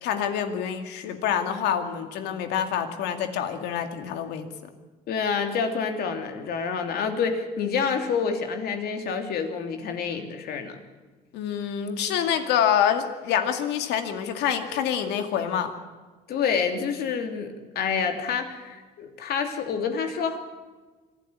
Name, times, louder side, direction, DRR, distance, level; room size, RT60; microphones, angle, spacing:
voice 1, 0.0-4.5 11.3-15.7, left 9 dB, 85° left, 7 dB, 2.4 m, -26 dB
voice 2, 5.1-10.8 16.3-17.5 17.7-20.4, left 6 dB, 65° left, 5 dB, 3.1 m, -28 dB
25.0 x 13.0 x 9.8 m, 1.3 s
cardioid pair, 110°, 17 cm